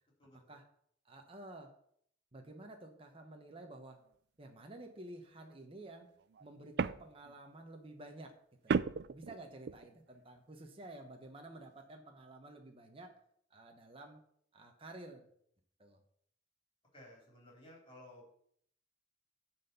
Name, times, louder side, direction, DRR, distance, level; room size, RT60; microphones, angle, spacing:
voice 1, 0.2-0.5 16.9-18.3, left 1 dB, 25° left, -2 dB, 3.3 m, -56 dB
voice 2, 1.0-1.7 2.3-4.0 4.4-6.1 6.4-8.3 8.6-8.7 9.1-13.2 13.5-14.2 14.5-15.3 15.8-16.0, right 2 dB, 30° right, 3 dB, 1.0 m, -51 dB
sound 1, 5.4-5.6 6.2-7.4 8.7-9.9, right 5 dB, 55° right, 0.3 m, -35 dB
10.5 x 4.4 x 6.8 m, 0.66 s
head